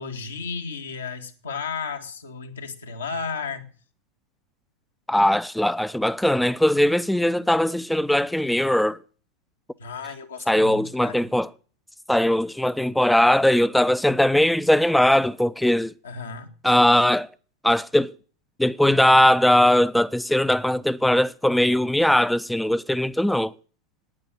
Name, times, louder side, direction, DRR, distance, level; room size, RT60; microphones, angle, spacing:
voice 1, 0.0-3.7 9.8-11.3 16.0-16.5, left 5 dB, 70° left, 2.0 m, -34 dB
voice 2, 5.1-9.0 10.5-11.5 12.1-15.9 16.6-17.3 17.6-18.1 18.6-23.5, left 1 dB, 5° left, 0.5 m, -20 dB
12.0 x 9.7 x 6.5 m
figure-of-eight pair, 90°, 0 cm